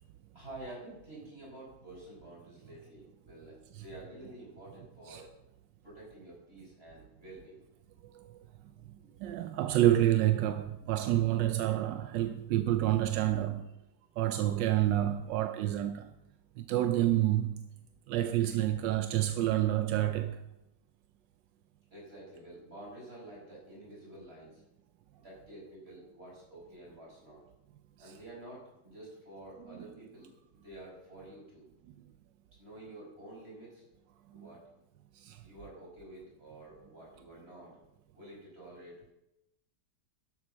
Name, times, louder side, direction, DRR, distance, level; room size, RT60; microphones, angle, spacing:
voice 1, 0.3-5.3 5.8-7.6 8.9-9.1 10.8-11.0 13.4-13.7 21.9-24.6 25.2-27.4 28.0-31.7 32.5-33.8 34.3-34.6 35.4-37.8 38.1-39.0, right 1 dB, 35° right, 5.6 m, -50 dB
voice 2, 9.2-13.6 14.2-16.1 16.6-17.6 18.1-20.4 35.3-35.4, right 13 dB, 85° right, 1.3 m, -28 dB
12.5 x 7.5 x 5.6 m
omnidirectional pair, 1.9 m